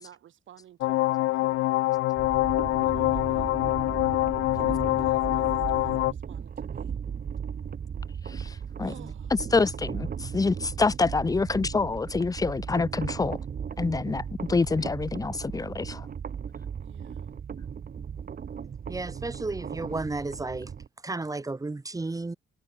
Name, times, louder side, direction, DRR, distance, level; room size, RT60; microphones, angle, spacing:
voice 1, 0.0-1.7 2.8-3.6 4.6-7.0 8.8-9.4 16.8-17.3, right 11 dB, 75° right, 7.2 m, -51 dB
sound 1, 0.8-6.1, left 18 dB, 85° left, 0.5 m, -25 dB
sound 2, 2.2-20.9, right 7 dB, 50° right, 3.5 m, -36 dB
voice 2, 9.5-13.4 13.8-16.1, left 4 dB, 20° left, 0.7 m, -26 dB
voice 3, 18.9-20.7 21.0-22.4, right 3 dB, 15° right, 1.7 m, -33 dB
cardioid pair, 90°, 20 cm